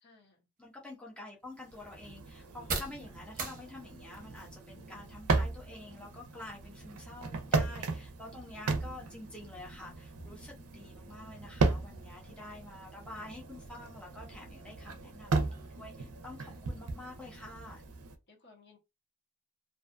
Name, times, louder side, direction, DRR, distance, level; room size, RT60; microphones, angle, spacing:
voice 1, 0.0-0.5 7.7-8.0 18.3-18.8, left 3 dB, 50° left, 0.9 m, -60 dB
voice 2, 0.6-17.8, left 2 dB, 5° left, 0.5 m, -48 dB
sound 1, 0.6-18.2, right 4 dB, 40° right, 0.7 m, -49 dB
sound 2, 1.6-18.2, right 3 dB, 75° right, 0.5 m, -36 dB
2.5 x 2.3 x 2.4 m
head